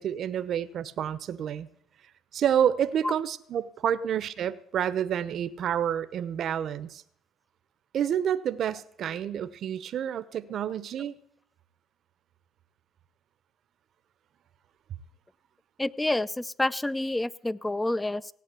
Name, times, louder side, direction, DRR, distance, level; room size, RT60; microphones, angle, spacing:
voice 1, 0.0-1.7 2.3-7.0 7.9-11.2, right 9 dB, 55° right, 0.8 m, -29 dB
voice 2, 15.8-18.3, left 2 dB, 10° left, 0.5 m, -28 dB
16.5 x 8.4 x 8.2 m
cardioid pair, 95°, 0 cm